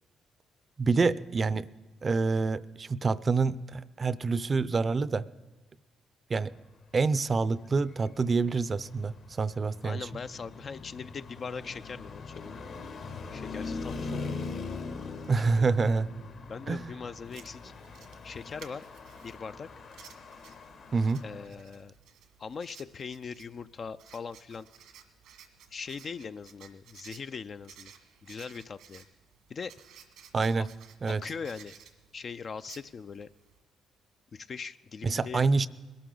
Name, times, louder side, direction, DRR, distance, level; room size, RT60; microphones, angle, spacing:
voice 1, 0.8-1.7 2.0-5.2 6.3-6.5 6.9-10.1 15.3-16.1 16.7-16.9 20.9-21.2 30.3-30.7 31.0-31.2 35.0-35.7, right 4 dB, 35° right, 17 dB, 0.5 m, -27 dB
Traffic noise roadway noise, 7.7-21.5, left 4 dB, 65° left, 1.7 m, -41 dB
voice 2, 9.8-12.6 13.3-14.5 15.4-15.8 16.5-17.7 18.2-18.9 19.2-19.7 21.2-21.9 22.4-24.7 25.7-27.9 28.2-29.0 29.5-29.7 30.6-30.7 31.1-31.8 32.1-33.3 34.3-35.5, left 5 dB, 45° left, 11 dB, 0.4 m, -41 dB
Writing, 17.2-33.6, right 8 dB, 90° right, 1.5 m, -56 dB
21.0 x 13.0 x 3.9 m, 1.2 s
cardioid pair, 90°, 0 cm